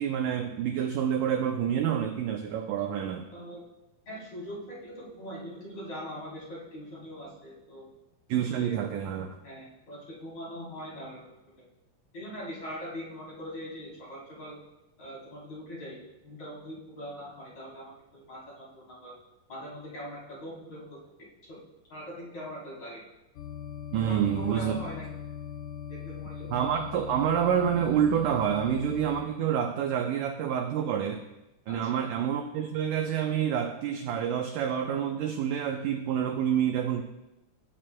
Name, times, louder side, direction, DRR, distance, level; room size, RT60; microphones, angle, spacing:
voice 1, 0.0-3.3 8.3-9.4 23.9-24.8 26.5-31.2 31.7-37.0, right 9 dB, 80° right, 4 dB, 1.9 m, -28 dB
voice 2, 3.3-3.6 4.1-7.9 8.5-8.8 9.4-11.2 12.1-14.6 15.0-16.0 16.2-19.1 19.5-21.0 21.5-21.6 21.9-23.0 24.0-25.1 25.9-26.5 31.7-32.0, equal, 45° left, -7 dB, 4.6 m, -41 dB
sound 1, 23.4-29.3, left 8 dB, 85° left, 1.7 m, -40 dB
18.0 x 9.3 x 2.2 m, 0.94 s
omnidirectional pair, 4.3 m